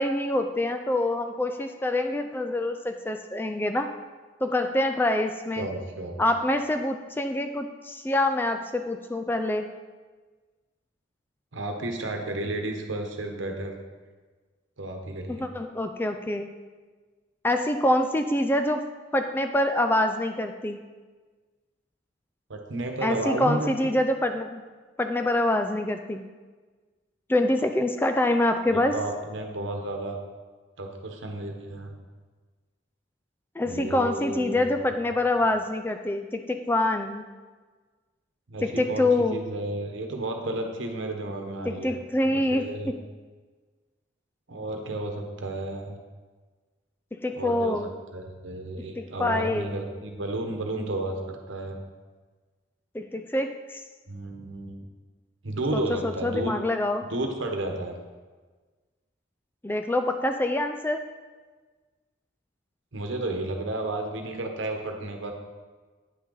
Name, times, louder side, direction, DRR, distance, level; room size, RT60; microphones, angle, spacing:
voice 1, 0.0-3.9 4.4-5.7 6.2-9.7 15.3-16.5 17.4-18.8 19.1-20.8 23.0-24.6 25.0-26.2 27.3-29.0 33.6-37.2 38.6-39.4 41.7-42.9 47.1-47.9 49.0-49.8 52.9-53.8 55.7-57.0 59.6-61.0, left 1 dB, 10° left, 7 dB, 0.3 m, -26 dB
voice 2, 5.6-6.2 11.5-13.8 14.8-15.5 22.5-23.9 28.7-30.2 30.8-31.9 33.6-34.6 38.5-42.0 42.2-42.9 44.5-45.9 47.4-51.8 54.1-54.8 55.4-56.6 57.1-58.0 62.9-65.3, right 2 dB, 80° right, 3 dB, 1.1 m, -32 dB
9.5 x 6.3 x 3.9 m, 1.4 s
head